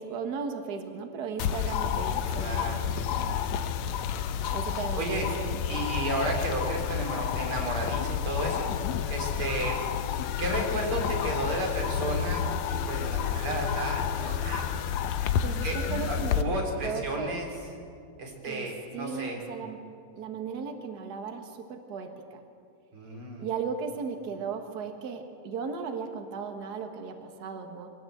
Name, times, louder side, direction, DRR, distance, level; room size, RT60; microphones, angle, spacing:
voice 1, 0.0-2.8 4.5-5.6 15.4-17.3 18.4-18.7 18.9-19.8 20.1-22.4 23.4-27.9, right 5 dB, 90° right, 5 dB, 0.8 m, -36 dB
sound 1, 1.4-16.4, left 8 dB, 85° left, 1.6 m, -30 dB
voice 2, 2.3-2.9 4.9-5.3 5.7-8.7 9.1-9.8 10.4-14.9 15.6-17.5 18.2-19.4 22.9-23.5, right 1 dB, 35° right, 0 dB, 4.2 m, -33 dB
23.5 x 17.5 x 7.8 m, 2.3 s
omnidirectional pair, 4.3 m